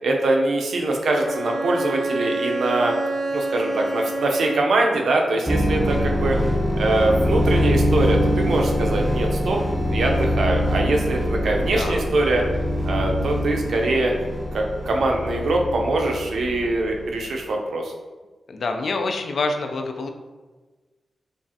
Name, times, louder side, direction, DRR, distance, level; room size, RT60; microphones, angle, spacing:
voice 1, 0.0-2.9 3.3-6.4 6.8-9.6 9.9-12.4 12.8-14.1 14.5-17.9, right 2 dB, 85° right, 1 dB, 0.6 m, -23 dB
Bowed string instrument, 1.1-4.9, right 2 dB, 50° right, 0.7 m, -27 dB
sound 1, 5.5-17.1, equal, 15° right, 0.4 m, -24 dB
voice 2, 18.5-20.1, left 3 dB, 60° left, 5 dB, 0.4 m, -26 dB
5.2 x 2.4 x 2.7 m, 1.3 s
wide cardioid pair, 175°, 0 cm